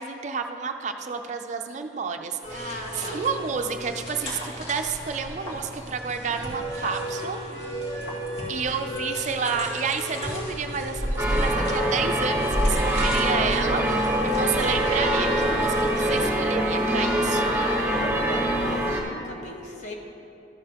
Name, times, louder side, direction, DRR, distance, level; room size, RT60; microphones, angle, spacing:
voice 1, 0.0-7.4 8.5-17.5, right 5 dB, 40° right, 6 dB, 0.4 m, -30 dB
sound 1, 2.4-16.3, equal, 90° left, 2.1 m, -32 dB
voice 2, 2.5-3.2 17.5-19.9, left 1 dB, 40° left, 0 dB, 1.1 m, -37 dB
sound 2, 11.2-19.0, equal, 15° right, 1.1 m, -24 dB
13.5 x 6.8 x 2.9 m, 2.7 s
head